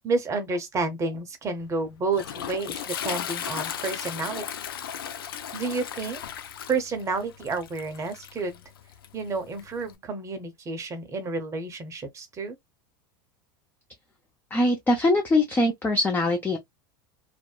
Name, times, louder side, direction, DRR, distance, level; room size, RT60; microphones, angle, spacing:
voice 1, 0.0-4.4 5.5-6.2 6.7-8.6 9.1-12.6, right 3 dB, 25° right, 0.8 m, -30 dB
Toilet flush, 1.6-9.9, left 9 dB, 90° left, 0.4 m, -36 dB
voice 2, 14.5-16.6, left 2 dB, 15° left, 0.5 m, -22 dB
2.6 x 2.1 x 2.3 m
hypercardioid pair, 105°, 12 cm